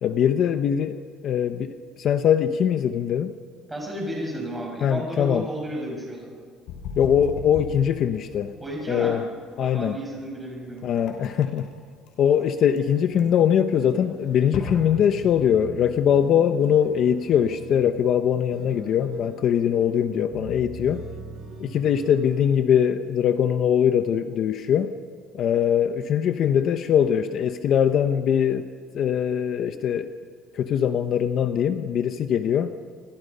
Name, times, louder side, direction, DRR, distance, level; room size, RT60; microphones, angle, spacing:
voice 1, 0.0-3.3 4.8-5.5 7.0-8.5 8.9-9.2 9.6-10.0 10.8-11.7 12.2-21.0 21.6-24.9 25.3-28.7 28.9-30.1 30.5-32.7, left 9 dB, 40° left, 8 dB, 0.9 m, -22 dB
voice 2, 3.7-6.3 8.6-9.2 9.6-10.8, right 1 dB, 5° right, -1 dB, 6.1 m, -32 dB
sound 1, 6.7-15.5, left 5 dB, 70° left, 6.1 m, -37 dB
sound 2, 13.1-22.5, right 3 dB, 30° right, 7.3 m, -42 dB
30.0 x 26.5 x 5.5 m, 2.1 s
cardioid pair, 175°, 0 cm